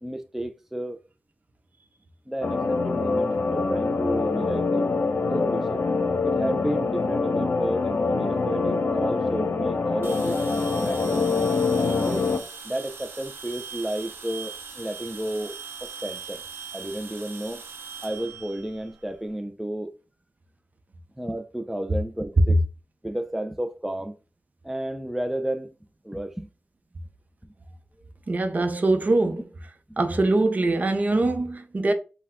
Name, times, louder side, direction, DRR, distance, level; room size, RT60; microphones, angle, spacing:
voice 1, 0.0-1.0 2.3-4.9 5.3-5.8 6.2-10.4 10.8-11.5 11.8-12.3 12.6-15.6 15.8-16.4 16.7-17.6 18.0-20.0 21.2-22.6 23.0-24.1 24.6-25.7 26.0-26.5 29.9-30.0, right 1 dB, 5° right, 0.5 m, -32 dB
sound 1, 2.4-12.4, left 4 dB, 70° left, 0.7 m, -25 dB
sound 2, 10.0-19.3, right 6 dB, 90° right, 0.8 m, -40 dB
voice 2, 28.3-29.4 30.0-31.9, right 2 dB, 45° right, 0.7 m, -23 dB
5.5 x 2.2 x 3.6 m
cardioid pair, 60°, 4 cm